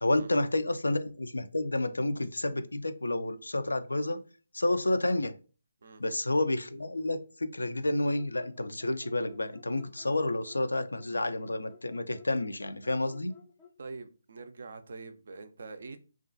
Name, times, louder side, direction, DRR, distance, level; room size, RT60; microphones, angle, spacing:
voice 1, 0.0-4.2 4.5-5.3 6.0-13.3, left 2 dB, 80° left, 0.3 m, -30 dB
sound 1, 7.9-13.8, left 6 dB, 15° left, 0.4 m, -56 dB
voice 2, 13.8-16.0, right 3 dB, 60° right, 0.3 m, -44 dB
2.3 x 2.2 x 2.5 m
figure-of-eight pair, 145°, 0 cm